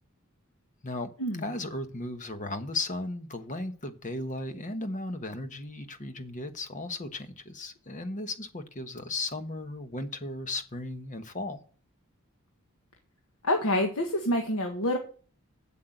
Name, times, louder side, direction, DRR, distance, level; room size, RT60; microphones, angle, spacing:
voice 1, 1.4-11.6, left 2 dB, 35° left, 1.2 m, -36 dB
voice 2, 13.4-15.0, left 1 dB, 75° left, 1.5 m, -27 dB
8.0 x 7.6 x 7.8 m
head